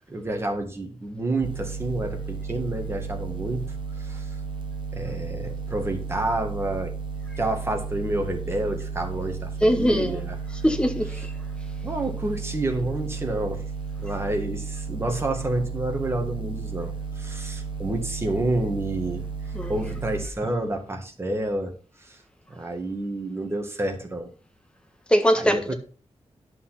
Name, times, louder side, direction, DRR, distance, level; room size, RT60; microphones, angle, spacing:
voice 1, 0.1-3.6 4.0-4.4 4.9-6.9 7.4-10.4 11.8-13.6 14.0-19.2 19.7-21.7 22.0-22.2 22.5-24.3 25.3-25.7, right 1 dB, 25° right, 2.0 m, -29 dB
sound 1, 1.4-20.3, right 5 dB, 45° right, 1.1 m, -33 dB
voice 2, 9.6-10.2 10.6-11.2 19.5-19.7 25.1-25.7, equal, 10° left, 1.5 m, -21 dB
11.5 x 5.7 x 5.8 m
wide cardioid pair, 150°, 11 cm